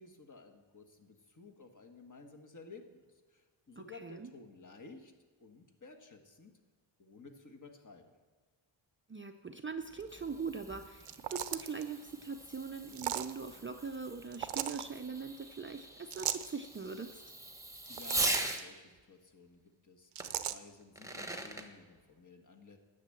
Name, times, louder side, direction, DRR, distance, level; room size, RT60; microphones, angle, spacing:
voice 1, 0.0-5.1 5.4-6.5 7.0-8.0 17.9-20.1 20.5-22.8, left 3 dB, 40° left, 5 dB, 1.4 m, -54 dB
voice 2, 3.8-4.3 9.1-17.2, right 5 dB, 25° right, 7 dB, 0.5 m, -42 dB
Fireworks, 9.8-18.6 20.2-20.3 20.8-21.7, right 1 dB, 5° right, 1.1 m, -41 dB
sound 1, 11.0-11.8 12.9-13.3 14.3-14.8 16.1-16.5 17.8-18.6 20.2-20.6, right 11 dB, 85° right, 0.7 m, -37 dB
10.5 x 6.7 x 7.6 m, 1.3 s
wide cardioid pair, 100°, 49 cm